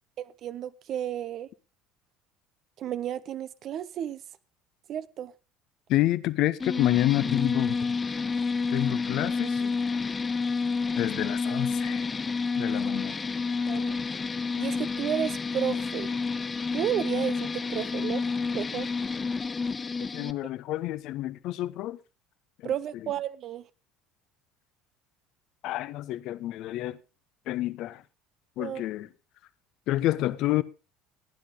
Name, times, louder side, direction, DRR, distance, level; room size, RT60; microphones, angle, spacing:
voice 1, 0.2-1.5 2.8-4.2 4.9-5.3 13.1-13.3 13.7-14.0 14.6-16.1 16.7-18.2 18.5-18.9 22.6-23.7 28.6-28.8, right 10 dB, 50° right, 0.7 m, -32 dB
voice 2, 5.9-7.9 8.7-9.7 11.0-12.1 12.5-13.2 20.1-22.0 22.6-22.7 25.6-27.0 27.5-28.0 28.6-29.1 29.9-30.6, left 15 dB, 60° left, 0.7 m, -28 dB
sound 1, 6.6-20.3, left 4 dB, 25° left, 0.7 m, -29 dB
17.0 x 9.9 x 3.8 m
hypercardioid pair, 65°, 0 cm